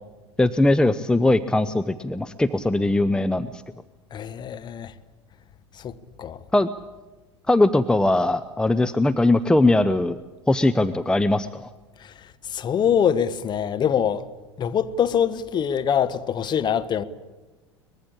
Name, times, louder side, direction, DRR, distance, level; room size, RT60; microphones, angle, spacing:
voice 1, 0.4-3.6 6.5-6.7 7.5-10.2 10.5-11.6, left 2 dB, 5° left, 0.8 m, -20 dB
voice 2, 4.1-4.9 5.7-6.4 12.0-14.3 14.6-17.0, left 8 dB, 30° left, 1.4 m, -24 dB
23.5 x 21.0 x 8.8 m
figure-of-eight pair, 75°, 14 cm